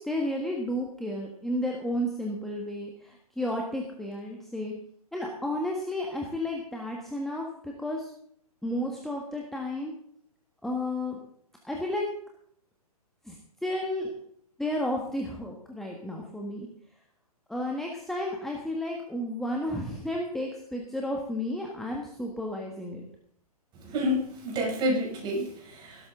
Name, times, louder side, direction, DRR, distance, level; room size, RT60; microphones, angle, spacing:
voice 1, 0.0-4.7 5.1-8.1 8.6-9.9 10.6-11.2 11.6-12.0 13.2-14.1 14.6-16.7 17.5-23.1, left 1 dB, ahead, 0 dB, 1.6 m, -32 dB
voice 2, 23.9-26.1, equal, 20° right, -2 dB, 6.2 m, -29 dB
15.5 x 13.0 x 3.8 m, 0.66 s
figure-of-eight pair, 125°, 20 cm